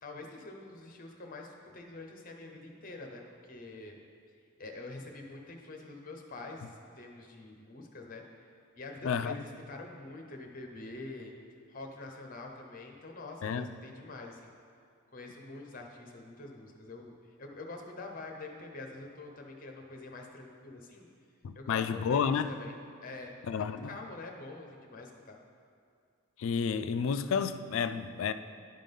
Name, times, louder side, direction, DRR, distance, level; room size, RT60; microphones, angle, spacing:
voice 1, 0.0-4.0 4.6-8.2 8.8-11.3 11.7-14.5 15.1-17.1 17.4-21.1 21.5-22.8 23.0-25.4, left 2 dB, 40° left, 2 dB, 0.9 m, -46 dB
voice 2, 9.0-9.4 13.4-13.7 21.4-22.5 23.5-23.9 26.4-28.3, left 6 dB, 65° left, 11 dB, 0.3 m, -30 dB
10.5 x 3.8 x 5.3 m, 2.3 s
head